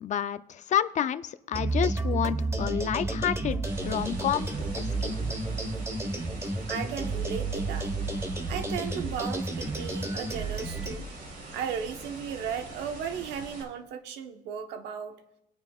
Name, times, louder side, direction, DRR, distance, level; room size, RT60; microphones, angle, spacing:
voice 1, 0.0-4.5 4.8-5.4, left 10 dB, 45° left, 13 dB, 0.6 m, -30 dB
sound 1, 1.5-11.0, right 2 dB, 15° right, 1.2 m, -31 dB
sound 2, 3.6-13.6, right 2 dB, 75° right, 4.0 m, -44 dB
voice 2, 6.7-7.9 8.5-11.1 11.5-15.2, right 7 dB, 90° right, 6 dB, 1.2 m, -35 dB
21.0 x 8.9 x 2.4 m, 0.88 s
cardioid pair, 110°, 17 cm